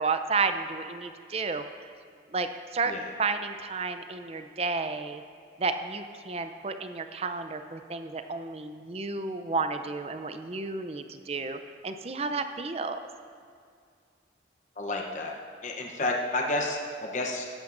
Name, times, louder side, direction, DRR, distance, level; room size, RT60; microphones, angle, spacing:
voice 1, 0.0-1.6 2.3-2.9 3.2-5.2 5.6-13.0, right 4 dB, 35° right, 8 dB, 0.5 m, -31 dB
voice 2, 14.8-15.3 15.6-17.5, left 2 dB, 40° left, 0 dB, 0.8 m, -30 dB
14.5 x 11.5 x 2.6 m, 2.3 s
head